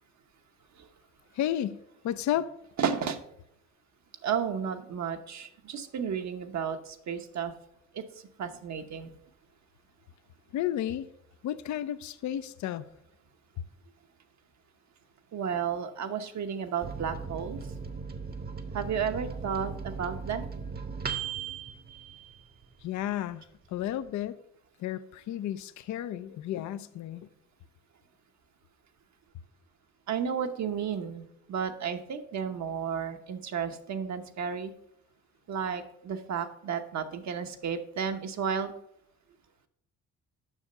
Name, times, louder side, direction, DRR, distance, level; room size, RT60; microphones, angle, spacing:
voice 1, 1.3-1.8 2.0-2.5 10.5-11.1 11.4-12.9 22.8-24.4 24.8-27.3, left 11 dB, 60° left, 13 dB, 0.5 m, -32 dB
voice 2, 2.8-3.2 4.2-7.5 7.9-8.0 8.4-9.1 15.3-17.6 18.7-20.4 30.1-34.7 35.5-38.7, right 7 dB, 60° right, 7 dB, 1.0 m, -32 dB
Microwave oven, 16.8-22.9 23.3-23.4 23.7-24.3, right 6 dB, 30° right, 0.9 m, -38 dB
7.2 x 5.8 x 5.4 m, 0.77 s
cardioid pair, 75°, 32 cm